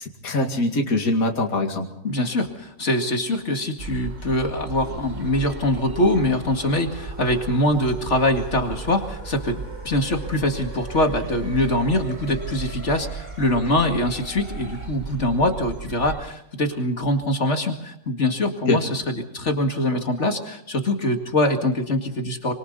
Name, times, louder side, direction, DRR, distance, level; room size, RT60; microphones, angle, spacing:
voice 1, 0.0-1.9 18.7-18.8, left 2 dB, 65° left, 2 dB, 2.7 m, -23 dB
voice 2, 2.0-22.5, left 1 dB, 50° left, 5 dB, 2.5 m, -23 dB
sound 1, 3.8-16.2, right 4 dB, 40° right, 0.8 m, -36 dB
sound 2, 4.8-14.9, right 1 dB, 20° right, 6.0 m, -43 dB
25.5 x 25.0 x 4.1 m, 0.76 s
omnidirectional pair, 1.6 m